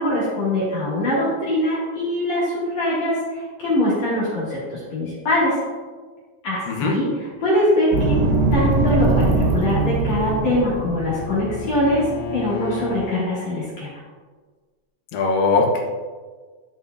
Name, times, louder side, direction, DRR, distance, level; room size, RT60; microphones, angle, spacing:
voice 1, 0.0-5.6 6.4-8.2 8.5-12.0 12.3-13.9, left 1 dB, 45° left, -9 dB, 3.1 m, -22 dB
sound 1, 7.9-13.0, right 2 dB, 90° right, 1.8 m, -22 dB
Bowed string instrument, 9.4-13.2, left 7 dB, 85° left, 2.3 m, -35 dB
voice 2, 15.1-15.8, left 3 dB, 70° left, 0 dB, 2.7 m, -20 dB
13.0 x 5.5 x 2.7 m, 1.4 s
omnidirectional pair, 5.2 m